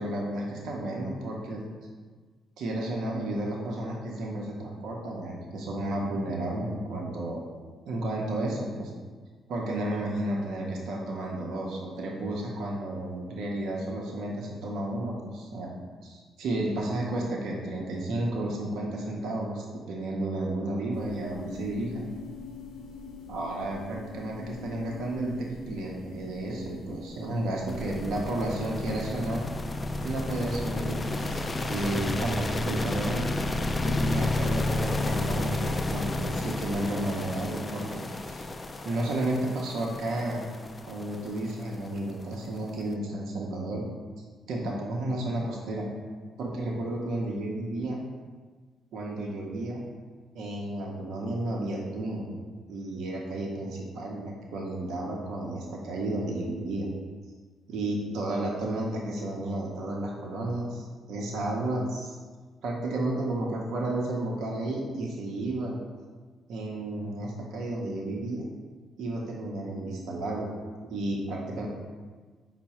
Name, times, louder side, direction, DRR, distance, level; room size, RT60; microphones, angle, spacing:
voice 1, 0.0-1.6 2.6-7.4 7.9-8.9 9.5-15.7 16.0-22.1 23.3-29.4 30.0-33.3 33.8-38.4 38.8-40.4 40.9-43.8 44.5-45.9 46.4-48.0 48.9-49.8 50.3-52.4 52.7-56.9 57.7-62.1 62.6-65.8 66.5-68.5 69.0-70.5 70.8-71.7, right 1 dB, 75° right, -2 dB, 0.6 m, -32 dB
sound 1, 20.9-34.3, left 3 dB, 85° left, 0.5 m, -46 dB
sound 2, 27.7-42.8, left 2 dB, 30° left, 0.3 m, -31 dB
4.5 x 2.0 x 4.1 m, 1.4 s
supercardioid pair, 65°, 0 cm